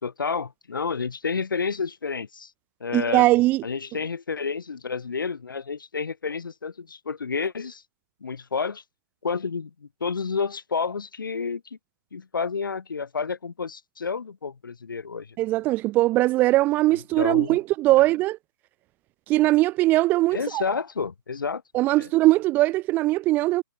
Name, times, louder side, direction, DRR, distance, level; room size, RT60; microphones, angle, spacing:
voice 1, 0.0-2.5 2.8-3.2 3.6-7.8 8.2-8.8 9.2-11.6 12.1-15.4 17.2-17.6 20.3-21.6 22.0-22.1, left 5 dB, 85° left, 4.3 m, -30 dB
voice 2, 2.9-3.6 15.4-18.4 19.3-20.6 21.7-23.6, right 18 dB, 15° right, 0.3 m, -20 dB
hypercardioid pair, 145°, 11 cm